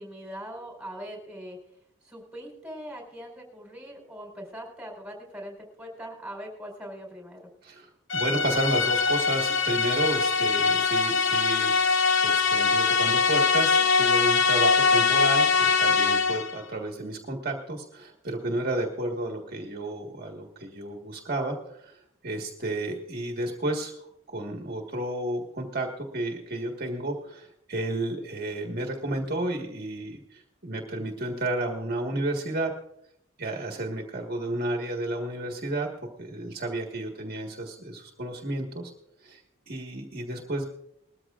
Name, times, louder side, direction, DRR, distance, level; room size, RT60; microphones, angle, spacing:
voice 1, 0.0-1.6 2.0-7.4, equal, 5° right, 0 dB, 4.3 m, -41 dB
voice 2, 7.6-24.0 24.3-32.7 33.4-35.9 36.2-38.9 39.2-39.4 39.7-40.7, right 1 dB, 50° right, 1 dB, 1.7 m, -32 dB
sound 1, 8.1-16.6, left 5 dB, 65° left, 0.9 m, -22 dB
20.5 x 14.0 x 2.5 m, 0.76 s
head